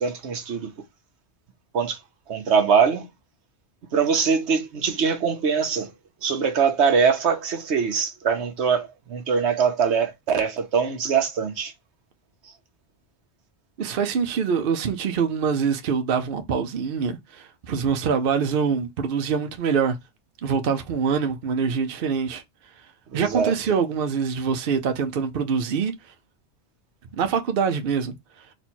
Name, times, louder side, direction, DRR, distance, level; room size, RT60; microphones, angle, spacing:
voice 1, 0.0-0.7 1.7-2.0 2.3-3.1 3.9-5.9 6.2-11.7 23.1-23.5, right 6 dB, 85° right, 1.2 m, -22 dB
voice 2, 13.8-20.0 20.4-22.4 23.1-26.1 27.1-28.5, right 6 dB, 60° right, 0.8 m, -24 dB
4.2 x 2.6 x 4.3 m
omnidirectional pair, 1.1 m